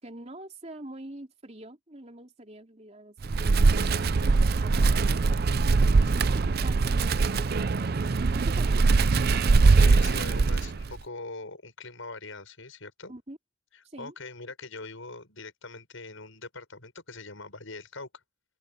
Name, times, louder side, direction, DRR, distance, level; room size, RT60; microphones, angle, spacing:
voice 1, 0.0-5.5 6.1-9.0 13.1-13.4 13.8-14.1, right 1 dB, 30° right, 3.5 m, -45 dB
Wind, 3.2-11.0, right 4 dB, 50° right, 0.5 m, -22 dB
voice 2, 9.6-13.1 13.7-18.1, left 3 dB, 75° left, 6.4 m, -42 dB
open air
head